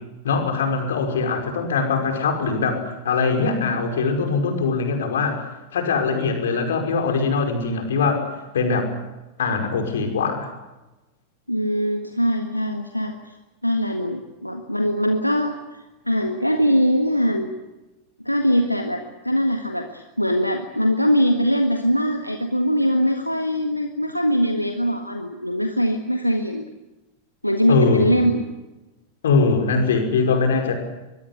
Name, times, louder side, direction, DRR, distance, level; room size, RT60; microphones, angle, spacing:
voice 1, 0.2-5.4 5.7-8.3 8.5-8.9 9.4-10.5 27.7-28.2 29.2-30.7, left 4 dB, 65° left, 5 dB, 5.5 m, -22 dB
voice 2, 11.5-13.3 13.6-17.5 18.2-26.7 27.4-28.4, equal, 90° left, 5 dB, 1.7 m, -22 dB
24.0 x 22.0 x 7.8 m, 1.1 s
figure-of-eight pair, 90°, 0 cm